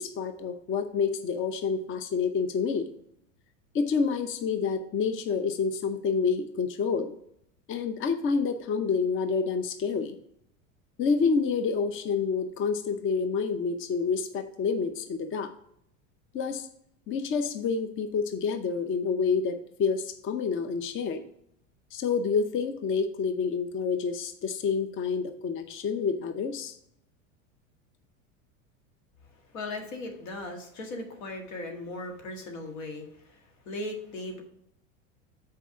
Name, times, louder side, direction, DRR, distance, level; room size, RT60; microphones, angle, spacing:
voice 1, 0.0-2.9 3.7-7.2 7.7-10.2 11.0-15.5 16.3-16.7 17.1-21.2 21.9-26.7, left 5 dB, 30° left, 8 dB, 0.7 m, -28 dB
voice 2, 29.5-33.4 33.6-34.4, left 2 dB, 85° left, 3 dB, 1.8 m, -38 dB
6.0 x 4.8 x 5.8 m, 0.72 s
supercardioid pair, 105°, 39 cm